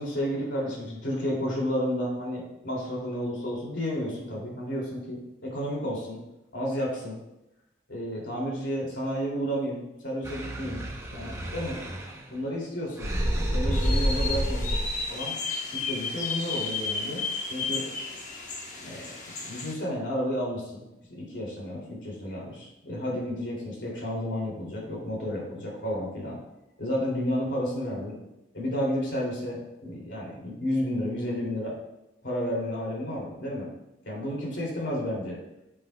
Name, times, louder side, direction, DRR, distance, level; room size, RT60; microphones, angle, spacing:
voice 1, 0.0-6.2 6.5-7.2 7.9-10.8 11.1-11.8 12.3-13.1 13.5-14.8 15.1-15.3 15.7-17.2 17.5-18.2 18.8-20.8 21.1-26.4 26.8-28.2 28.5-31.7 32.2-33.7 34.0-35.4, equal, 80° left, -3 dB, 2.7 m, -31 dB
sound 1, 10.2-12.4 13.0-15.0, equal, 15° right, 0.8 m, -29 dB
sound 2, 13.7-19.7, left 4 dB, 40° left, 1.1 m, -33 dB
9.1 x 7.6 x 2.3 m, 0.92 s
head